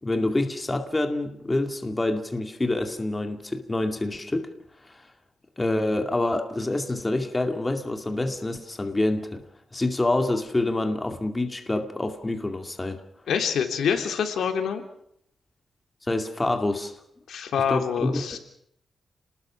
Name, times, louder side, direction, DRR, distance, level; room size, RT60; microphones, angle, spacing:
voice 1, 0.0-4.5 4.9-5.0 5.6-9.4 9.7-13.0 16.1-17.0 17.7-18.2, left 2 dB, 15° left, 5 dB, 2.3 m, -27 dB
voice 2, 13.3-14.8 17.3-18.4, left 7 dB, 90° left, 6 dB, 3.4 m, -26 dB
30.0 x 20.5 x 6.2 m, 0.72 s
wide cardioid pair, 135°, 0 cm